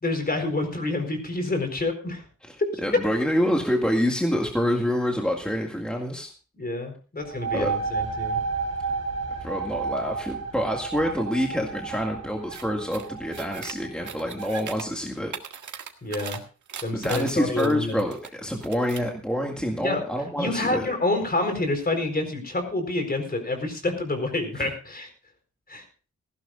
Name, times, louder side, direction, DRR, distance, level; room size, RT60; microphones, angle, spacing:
voice 1, 0.0-2.2 6.5-8.4 16.0-16.4 16.8-18.0 19.8-20.0 20.4-25.1 25.7-25.8, left 2 dB, 30° left, 6 dB, 4.4 m, -28 dB
voice 2, 2.8-6.3 7.5-7.8 9.4-15.3 16.9-20.9 24.6-24.7, equal, 5° left, 1 dB, 2.1 m, -27 dB
sound 1, 7.2-14.6, right 4 dB, 60° right, 3.3 m, -32 dB
sound 2, 12.5-12.6 12.9-13.7 14.0-14.8 15.2-16.4 16.7-18.3 18.6-19.1, right 7 dB, 90° right, 1.8 m, -38 dB
18.5 x 16.0 x 2.5 m, 0.35 s
wide cardioid pair, 125°, 29 cm